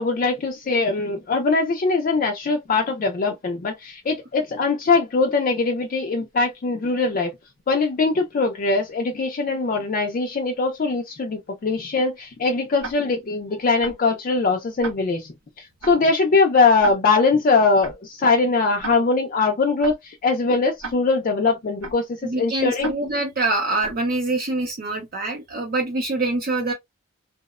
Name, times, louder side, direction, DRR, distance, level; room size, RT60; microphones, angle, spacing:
voice 1, 0.0-7.3 7.7-22.0 22.3-22.9, left 3 dB, 40° left, 0.4 m, -21 dB
Tick-tock, 12.8-12.9 13.8-13.9 14.8-14.9 15.8-15.9 16.8-16.9 17.8-17.9 18.8-18.9 19.8-19.9 20.8-20.9 21.8-21.9 22.8-22.9 23.8-23.9, right 4 dB, 85° right, 0.7 m, -33 dB
voice 2, 22.2-26.7, right 2 dB, 45° right, 0.5 m, -25 dB
2.7 x 2.0 x 2.3 m
head